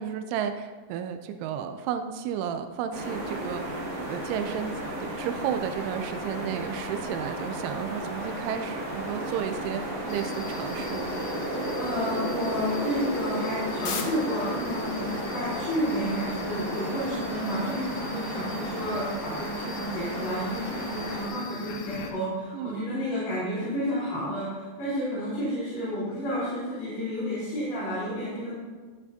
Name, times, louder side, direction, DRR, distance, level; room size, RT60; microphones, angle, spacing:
voice 1, 0.0-4.7 5.0-11.1 22.5-22.8, right 9 dB, 90° right, 8 dB, 3.0 m, -33 dB
sound 1, 2.9-21.3, right 1 dB, 40° right, 2.9 m, -33 dB
sound 2, 10.1-22.1, left 6 dB, 80° left, 2.1 m, -42 dB
voice 2, 11.8-28.5, equal, 40° left, -11 dB, 3.7 m, -31 dB
12.0 x 8.1 x 2.8 m, 1.4 s
omnidirectional pair, 5.4 m